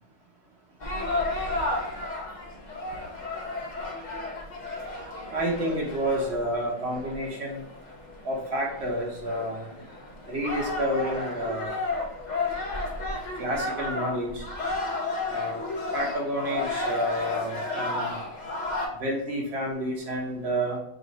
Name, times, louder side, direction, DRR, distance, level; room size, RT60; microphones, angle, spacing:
sound 1, 0.8-18.9, left 2 dB, 65° left, 0.4 m, -33 dB
voice 1, 5.3-7.6 8.2-9.7 10.3-11.8 13.3-14.5 15.3-15.6 15.9-18.2 18.9-20.8, equal, 45° right, -1 dB, 1.0 m, -29 dB
3.8 x 2.4 x 4.1 m, 0.75 s
omnidirectional pair, 1.7 m